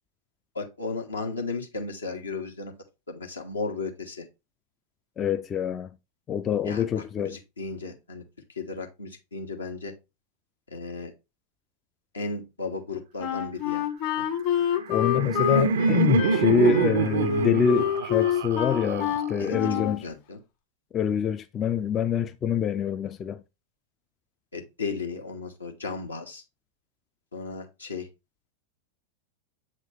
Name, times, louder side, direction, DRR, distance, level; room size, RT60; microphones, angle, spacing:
voice 1, 0.5-2.7 3.1-4.3 6.6-8.2 8.5-9.9 10.7-11.1 12.1-13.9 14.2-14.3 19.4-20.4 24.5-26.4 27.3-28.1, left 4 dB, 75° left, 1.4 m, -35 dB
voice 2, 5.2-5.9 6.3-7.4 14.9-20.0 20.9-23.4, left 7 dB, 25° left, 0.4 m, -25 dB
Wind instrument woodwind instrument, 13.2-20.0, left 9 dB, 45° left, 1.5 m, -28 dB
Laughter, 14.6-19.6, right 5 dB, 60° right, 0.5 m, -26 dB
7.6 x 3.6 x 3.4 m
figure-of-eight pair, 90°, 0 cm